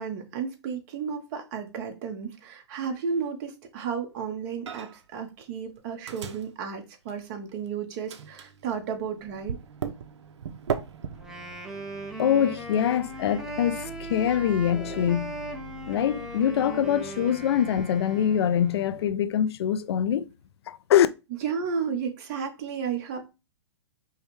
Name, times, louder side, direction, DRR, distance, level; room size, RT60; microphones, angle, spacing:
voice 1, 0.0-9.6 21.4-23.3, right 6 dB, 40° right, 1.1 m, -33 dB
Microwave oven, 4.7-5.1 5.4-7.7 8.1-19.1, right 7 dB, 75° right, 0.6 m, -40 dB
Wind instrument woodwind instrument, 11.2-18.9, right 1 dB, 5° right, 0.6 m, -39 dB
voice 2, 12.2-15.4 15.9-20.3 20.7-21.1, left 9 dB, 65° left, 0.4 m, -24 dB
5.4 x 2.2 x 3.1 m
hypercardioid pair, 140°, 15 cm